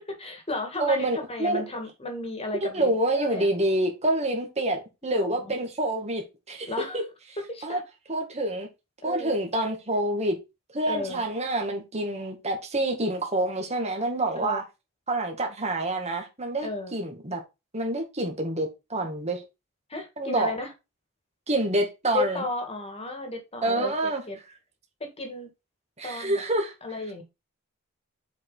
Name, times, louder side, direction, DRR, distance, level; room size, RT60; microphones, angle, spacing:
voice 1, 0.0-3.5 5.0-5.5 6.7-7.0 7.4-7.8 9.0-9.3 10.9-11.2 14.3-14.6 16.6-16.9 19.9-20.7 22.1-23.9 24.3-24.4 25.0-25.5 26.0-26.4 26.8-27.2, left 2 dB, 30° left, 2.2 m, -34 dB
voice 2, 0.8-1.6 2.6-7.0 7.6-7.8 8.1-8.7 9.0-10.4 10.7-14.6 15.1-17.4 17.7-19.4 20.2-20.5 21.5-22.4 23.6-24.2 26.0-26.7, right 1 dB, 30° right, 2.1 m, -27 dB
7.5 x 5.1 x 4.0 m
head